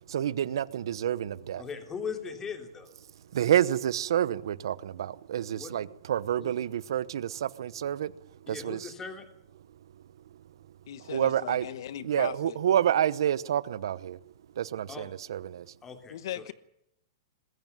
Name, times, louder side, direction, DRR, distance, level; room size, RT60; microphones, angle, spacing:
voice 1, 0.1-1.6 3.3-8.1 8.5-8.9 11.1-11.7 12.0-14.2 14.6-15.6, right 10 dB, 75° right, 1.0 m, -28 dB
voice 2, 1.6-2.9 5.5-5.7 6.4-6.5 8.5-9.3 14.9-15.1 15.8-16.5, left 6 dB, 15° left, 3.2 m, -39 dB
voice 3, 10.9-12.6 16.1-16.5, left 11 dB, 65° left, 1.2 m, -38 dB
21.5 x 15.0 x 9.4 m
hypercardioid pair, 155°, 2 cm